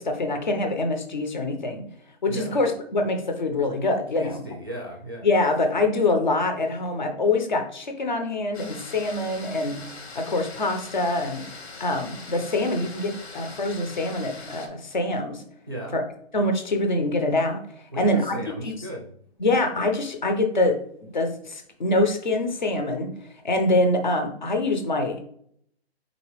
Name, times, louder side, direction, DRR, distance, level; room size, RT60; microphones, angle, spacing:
voice 1, 0.0-1.8 2.2-4.4 5.2-9.8 10.1-11.4 11.8-15.4 15.9-16.0 16.3-17.6 18.0-18.7 19.4-20.7 21.0-23.1 23.4-25.2, left 2 dB, 45° left, 6 dB, 0.8 m, -25 dB
voice 2, 2.2-2.6 4.1-5.3 15.7-16.0 17.9-19.1, equal, 20° right, -1 dB, 0.5 m, -35 dB
sound 1, 8.5-14.7, left 3 dB, 85° left, 1.3 m, -41 dB
4.0 x 4.0 x 3.1 m, 0.65 s
hypercardioid pair, 180°, 32 cm